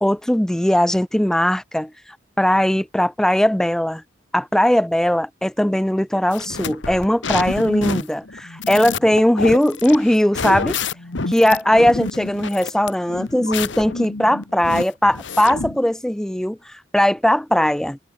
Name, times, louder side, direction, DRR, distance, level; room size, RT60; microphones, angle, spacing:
voice 1, 0.0-1.9 2.4-4.0 4.3-10.8 11.3-18.0, equal, 5° left, 0.3 m, -19 dB
sound 1, 6.3-15.8, left 4 dB, 65° left, 1.3 m, -28 dB
head